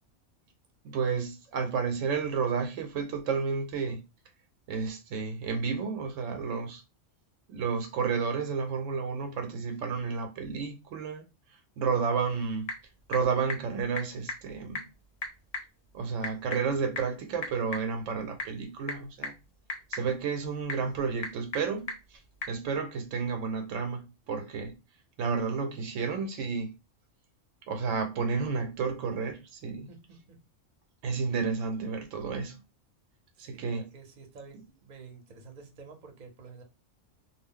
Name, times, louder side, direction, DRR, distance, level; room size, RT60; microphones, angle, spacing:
voice 1, 0.8-4.0 4.7-6.8 7.5-11.2 11.8-12.7 13.1-14.9 15.9-19.3 19.9-22.2 22.5-24.8 25.2-26.7 27.7-29.9 31.0-32.6 33.4-33.9, right 5 dB, 75° right, 0.9 m, -31 dB
Typing / Telephone, 12.1-22.6, left 2 dB, 50° left, 0.6 m, -41 dB
voice 2, 33.4-36.6, right 4 dB, 45° right, 0.7 m, -49 dB
2.3 x 2.0 x 3.6 m
omnidirectional pair, 1.3 m